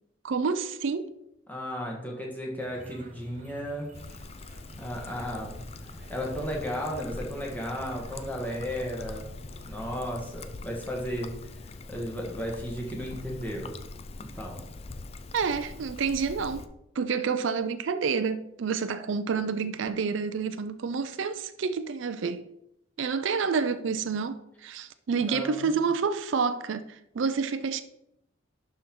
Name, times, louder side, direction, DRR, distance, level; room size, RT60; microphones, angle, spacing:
voice 1, 0.2-1.1 15.3-16.6 17.0-22.5 23.0-27.8, right 5 dB, 70° right, 0.4 m, -29 dB
voice 2, 1.5-3.9 4.8-9.3 9.7-13.8 14.2-14.6 25.2-25.7, equal, 10° left, 1.5 m, -35 dB
sound 1, 2.6-10.2, right 1 dB, 35° right, 0.9 m, -49 dB
Trickle dribble, 3.9-16.7, left 2 dB, 30° left, 0.4 m, -43 dB
11.0 x 4.5 x 3.8 m
head